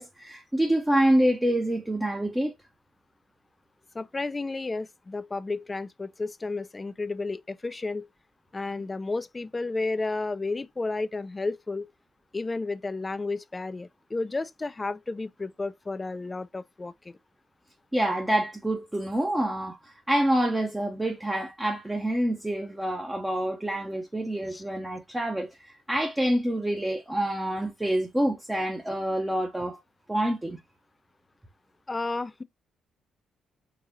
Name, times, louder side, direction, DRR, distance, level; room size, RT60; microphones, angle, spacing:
voice 1, 0.0-2.5 17.9-29.8 30.1-30.6, right 1 dB, 10° right, 0.7 m, -27 dB
voice 2, 3.9-8.1 8.5-11.9 12.3-17.1 24.5-24.6 31.9-32.4, left 3 dB, 25° left, 0.3 m, -32 dB
3.9 x 2.8 x 2.7 m
cardioid pair, 90°, 0 cm